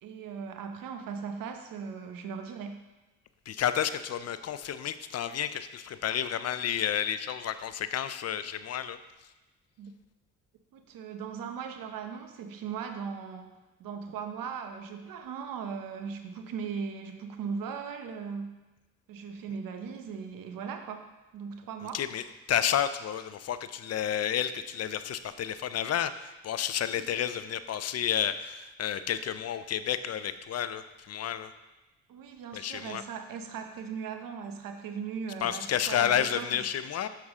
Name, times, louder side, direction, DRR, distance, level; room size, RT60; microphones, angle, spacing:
voice 1, 0.0-2.8 9.8-9.9 10.7-13.5 13.8-18.6 19.1-22.0 26.9-27.1 32.1-36.6, right 6 dB, 75° right, 6 dB, 0.8 m, -38 dB
voice 2, 3.5-9.0 21.9-22.2 22.5-31.5 32.5-33.0 35.4-37.1, left 9 dB, 45° left, 12 dB, 0.5 m, -31 dB
6.3 x 5.7 x 3.6 m, 1.1 s
supercardioid pair, 55°, 34 cm